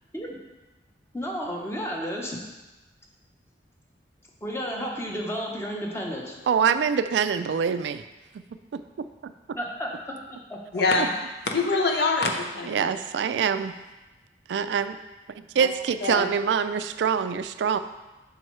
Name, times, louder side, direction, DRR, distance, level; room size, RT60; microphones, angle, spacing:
voice 1, 1.1-2.4 4.4-6.4 9.6-10.8, equal, 15° left, -1 dB, 0.9 m, -32 dB
voice 2, 6.5-8.0 8.7-9.6 12.7-13.7 14.5-15.0 15.5-17.8, right 7 dB, 75° right, 11 dB, 0.3 m, -25 dB
voice 3, 10.7-11.1 11.4-13.0 15.6-15.7 16.0-16.3, left 3 dB, 65° left, 2 dB, 0.8 m, -24 dB
7.7 x 5.3 x 3.2 m, 1.1 s
head